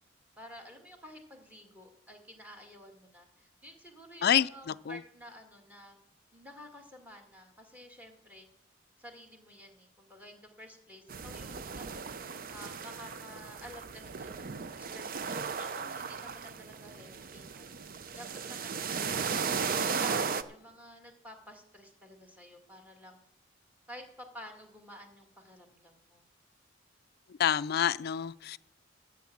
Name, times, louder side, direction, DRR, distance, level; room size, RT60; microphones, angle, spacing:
voice 1, 0.4-6.0 6.3-8.5 9.0-12.1 12.5-19.3 19.6-23.2 23.9-26.2, equal, 10° right, 1.9 m, -51 dB
sound 1, 11.1-20.4, right 5 dB, 50° right, 0.6 m, -36 dB
voice 2, 27.4-28.6, left 9 dB, 55° left, 0.4 m, -27 dB
13.5 x 7.2 x 7.1 m
head